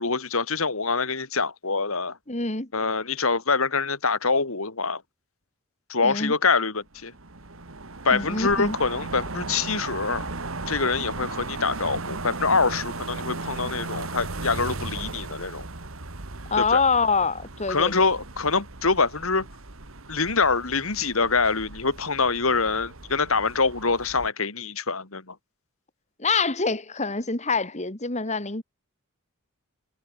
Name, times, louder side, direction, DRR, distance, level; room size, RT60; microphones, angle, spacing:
voice 1, 0.0-2.2 2.7-5.0 5.9-7.1 8.0-10.3 10.7-15.6 16.6-16.8 17.7-19.5 20.1-25.4, left 4 dB, 70° left, 2.5 m, -25 dB
voice 2, 2.3-2.7 6.0-6.3 8.1-8.8 16.5-17.9 26.2-28.6, left 4 dB, 30° left, 2.3 m, -25 dB
sound 1, 6.9-24.3, right 3 dB, 65° right, 2.1 m, -36 dB
head